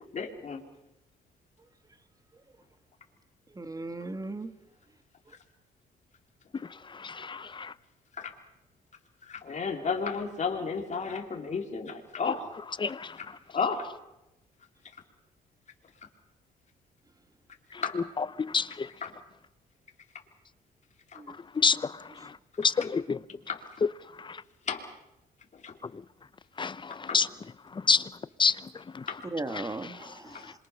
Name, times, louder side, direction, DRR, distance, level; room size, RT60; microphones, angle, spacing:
voice 1, 0.1-0.6 8.2-8.3 9.2-12.6 13.2-13.3 13.5-13.9 17.8-18.0 19.0-19.1 21.1-21.2 23.5-23.6 24.7-24.9 25.5-25.8 26.9-27.2 29.1-29.2 30.3-30.4, left 5 dB, 45° left, 2.9 m, -33 dB
voice 2, 3.5-4.5 21.2-21.3 29.3-30.5, right 2 dB, 20° right, 1.8 m, -37 dB
voice 3, 6.9-7.7 12.8-13.2 18.4-18.9 21.5-22.3 22.6-23.2 24.2-24.4 26.6-27.3 27.7-28.0 28.4-28.6 28.9-29.0 29.6-29.7 30.0-30.1, left 5 dB, 30° left, 0.8 m, -28 dB
26.5 x 23.0 x 5.7 m
cardioid pair, 80°, 17 cm